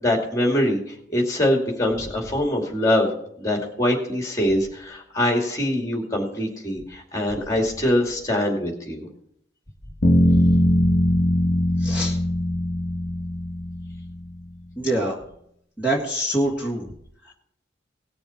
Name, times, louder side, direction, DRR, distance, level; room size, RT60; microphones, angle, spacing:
voice 1, 0.0-3.1 3.4-9.1, left 1 dB, 15° left, 1 dB, 2.4 m, -23 dB
sound 1, 10.0-14.1, left 1 dB, 50° left, 1.3 m, -20 dB
voice 2, 11.8-12.2 14.8-15.2 15.8-16.8, right 1 dB, 5° right, -5 dB, 1.8 m, -24 dB
18.5 x 7.0 x 4.4 m, 0.70 s
head